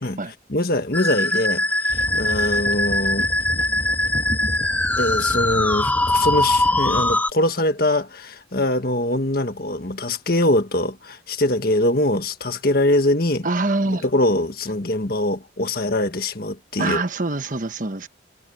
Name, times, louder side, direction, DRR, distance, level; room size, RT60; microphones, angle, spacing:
voice 1, 0.5-3.3 5.0-13.5 14.0-17.0, left 1 dB, 50° left, 1.7 m, -23 dB
Musical instrument, 0.9-7.3, left 1 dB, 10° left, 0.4 m, -21 dB
sound 1, 1.9-7.1, equal, 30° left, 2.0 m, -32 dB
voice 2, 13.4-14.0 16.8-18.1, right 2 dB, 45° right, 1.3 m, -24 dB
head